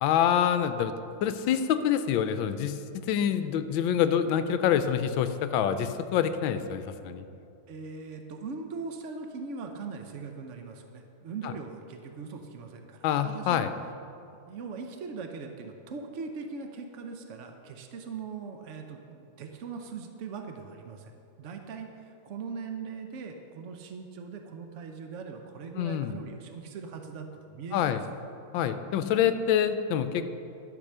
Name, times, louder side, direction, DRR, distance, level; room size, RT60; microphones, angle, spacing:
voice 1, 0.0-0.9 1.2-2.8 3.1-7.2 11.4-11.5 13.0-13.7 25.8-26.2 27.7-28.0 28.5-30.2, left 9 dB, 75° left, 11 dB, 1.3 m, -26 dB
voice 2, 7.7-13.0 13.2-13.6 14.5-21.1 21.4-27.9, right 5 dB, 80° right, 4 dB, 0.6 m, -40 dB
12.0 x 6.0 x 6.6 m, 2.7 s
omnidirectional pair, 2.3 m